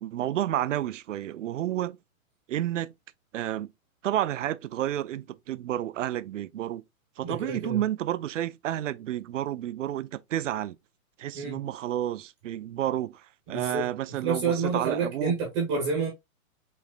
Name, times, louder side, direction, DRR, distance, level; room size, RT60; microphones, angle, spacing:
voice 1, 0.0-2.0 2.5-2.9 3.3-3.7 4.0-6.8 7.2-10.8 11.2-15.3, right 12 dB, 60° right, 0.5 m, -30 dB
voice 2, 7.2-7.8 11.3-11.6 13.5-13.9 14.2-16.1, right 5 dB, 20° right, 1.1 m, -28 dB
5.2 x 3.5 x 2.4 m
hypercardioid pair, 175°, 42 cm